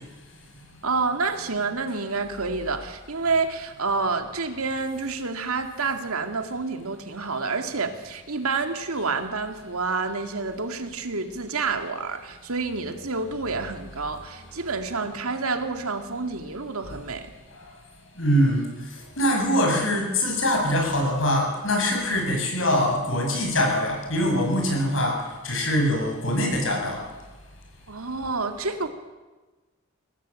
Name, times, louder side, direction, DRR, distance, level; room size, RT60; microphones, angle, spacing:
voice 1, 0.8-17.3 27.9-28.9, right 4 dB, 85° right, 6 dB, 2.4 m, -28 dB
voice 2, 18.2-18.7 19.2-25.2 25.4-27.0, equal, 65° left, 1 dB, 7.9 m, -23 dB
23.5 x 18.5 x 9.0 m, 1.2 s
head